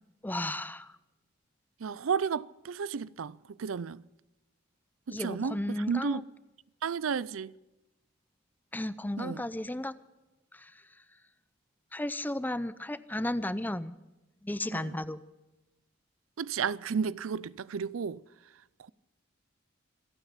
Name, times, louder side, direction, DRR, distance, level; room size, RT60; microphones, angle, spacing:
voice 1, 0.2-0.9 5.1-6.2 8.7-9.9 10.5-10.7 11.9-14.0 14.4-15.2, left 1 dB, 10° left, 0.6 m, -34 dB
voice 2, 1.8-4.0 5.1-5.6 5.9-6.3 6.8-7.5 9.2-9.4 14.7-14.9 16.4-18.2, right 6 dB, 90° right, 0.5 m, -32 dB
27.0 x 9.0 x 5.7 m
head